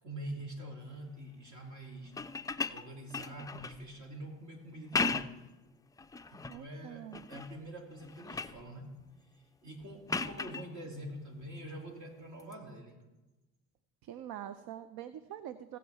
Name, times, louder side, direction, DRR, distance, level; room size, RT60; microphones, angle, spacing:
voice 1, 0.0-2.1 2.7-5.4 6.3-8.9 9.6-13.0, right 1 dB, 50° right, 0 dB, 2.8 m, -45 dB
sound 1, 2.1-3.8 4.7-5.5 6.0-6.6 7.1-7.6 7.9-8.6 10.1-10.7 12.4-12.5, left 4 dB, 10° left, 0.3 m, -36 dB
voice 2, 6.5-7.3 14.0-15.8, right 11 dB, 70° right, 13 dB, 0.6 m, -45 dB
17.0 x 7.3 x 3.5 m, 1.1 s
supercardioid pair, 75°, 37 cm